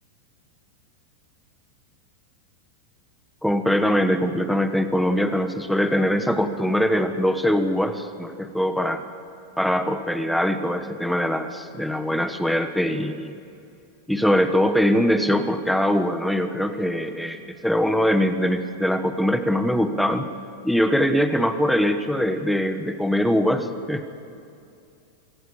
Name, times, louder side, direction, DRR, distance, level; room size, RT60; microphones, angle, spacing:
voice 1, 3.4-9.0 9.6-13.3 14.1-20.3 20.6-24.1, equal, ahead, 8 dB, 1.1 m, -22 dB
24.0 x 14.5 x 8.7 m, 2.6 s
supercardioid pair, 150°, 0 cm